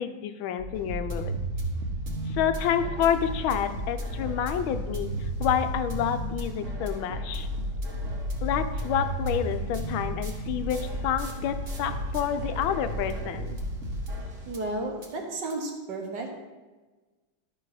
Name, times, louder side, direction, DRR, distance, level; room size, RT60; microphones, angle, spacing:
voice 1, 0.0-1.3 2.3-7.5 8.4-13.6, left 9 dB, 90° left, 10 dB, 1.5 m, -29 dB
sound 1, 0.6-14.7 15.0-15.1 15.5-15.6, right 1 dB, 40° right, 1.5 m, -33 dB
voice 2, 14.5-16.3, right 2 dB, 65° right, 1 dB, 1.9 m, -33 dB
12.0 x 4.9 x 4.8 m, 1.3 s
omnidirectional pair, 2.1 m